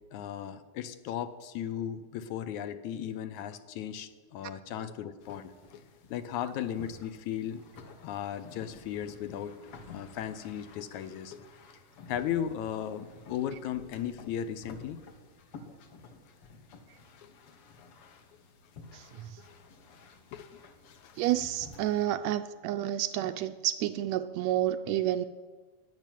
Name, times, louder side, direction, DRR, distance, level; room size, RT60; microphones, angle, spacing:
voice 1, 0.1-5.8 6.1-7.6 8.0-11.4 12.1-15.0 17.2-17.3 18.9-19.0 19.4-19.5 20.3-20.6 21.0-21.1, left 10 dB, 80° left, 12 dB, 2.2 m, -36 dB
sound 1, 5.2-22.1, left 3 dB, 55° left, 1.9 m, -52 dB
voice 2, 18.9-19.4 21.2-25.3, right 12 dB, 80° right, 10 dB, 1.7 m, -30 dB
12.0 x 10.5 x 9.1 m, 1.3 s
omnidirectional pair, 3.4 m